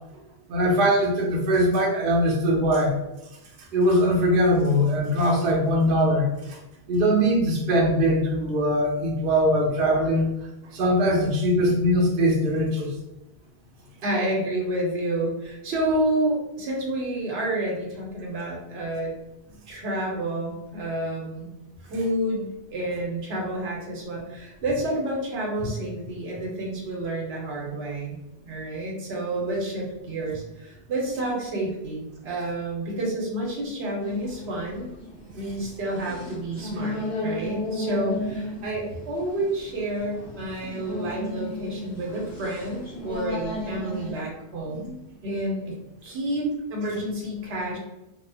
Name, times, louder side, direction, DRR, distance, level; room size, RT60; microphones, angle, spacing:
voice 1, 0.5-2.9 3.7-6.6 6.9-10.2 10.7-12.9, equal, 65° right, -2 dB, 0.7 m, -21 dB
voice 2, 14.0-19.1 19.7-21.5 21.8-28.2 28.4-34.9 35.3-45.7 46.0-47.8, right 1 dB, 85° right, -2 dB, 1.0 m, -29 dB
sound 1, 34.0-44.2, left 1 dB, 20° left, 0.7 m, -34 dB
2.8 x 2.0 x 2.7 m, 0.94 s
omnidirectional pair, 1.0 m